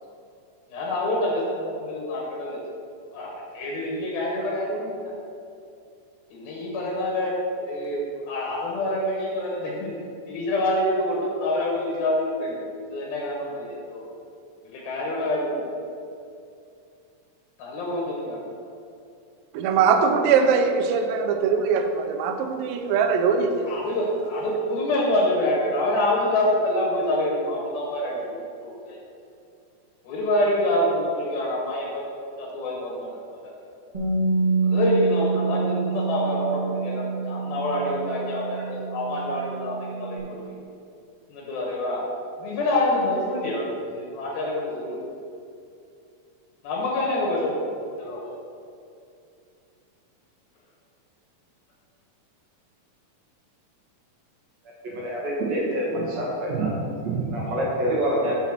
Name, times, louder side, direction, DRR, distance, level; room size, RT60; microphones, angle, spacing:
voice 1, 0.7-2.6 3.1-3.3 3.5-5.1 6.3-9.9 10.3-12.5 12.9-14.0 14.7-15.6 17.6-18.4 23.7-28.3 28.6-29.0 30.0-32.0 32.4-33.1 34.6-40.4 41.3-42.0 42.4-45.0 46.6-47.7 48.0-48.3, left 1 dB, 80° left, -3 dB, 3.0 m, -26 dB
voice 2, 19.5-23.7, right 6 dB, 80° right, 5 dB, 2.2 m, -21 dB
Bass guitar, 33.9-40.2, right 4 dB, 35° right, 0.6 m, -27 dB
voice 3, 54.8-56.7 57.0-58.3, right 1 dB, 60° right, -5 dB, 1.9 m, -26 dB
5.7 x 5.7 x 5.9 m, 2.5 s
omnidirectional pair, 4.2 m